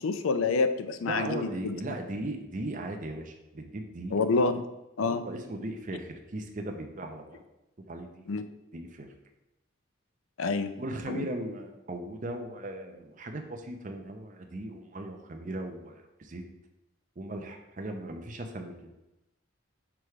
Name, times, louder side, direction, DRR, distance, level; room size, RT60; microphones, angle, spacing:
voice 1, 0.0-1.7 4.1-4.7 5.0-5.2 8.3-8.4 10.4-10.7 11.1-11.3, left 4 dB, 75° left, 10 dB, 0.5 m, -27 dB
voice 2, 1.0-4.2 5.0-7.4 7.9-8.3 8.7-9.1 10.8-16.4 17.2-18.9, right 1 dB, 40° right, 4 dB, 0.6 m, -38 dB
6.0 x 3.3 x 4.7 m, 0.95 s
head